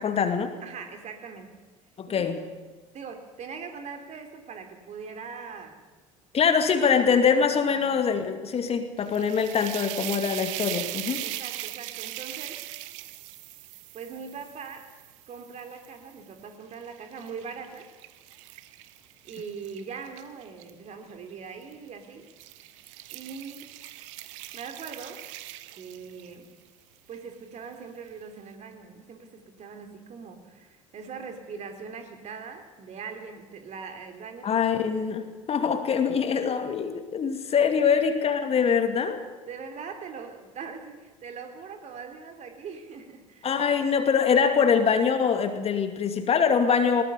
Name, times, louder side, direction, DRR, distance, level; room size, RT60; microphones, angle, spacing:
voice 1, 0.0-0.5 2.0-2.3 6.3-11.2 34.4-39.2 43.4-47.0, left 6 dB, 35° left, 7 dB, 2.4 m, -24 dB
voice 2, 0.6-1.6 2.1-2.4 2.9-5.8 7.7-7.8 11.2-12.6 13.9-15.0 15.3-17.9 19.2-22.3 23.1-23.8 24.5-25.3 25.8-26.5 27.1-34.6 37.4-37.8 39.5-43.6, right 5 dB, 40° right, 6 dB, 3.2 m, -41 dB
sound 1, 9.0-16.2 16.7-20.7 21.6-21.9 22.3-26.4, right 17 dB, 65° right, 0.9 m, -39 dB
20.5 x 19.0 x 6.9 m, 1.3 s
figure-of-eight pair, 65°, 17 cm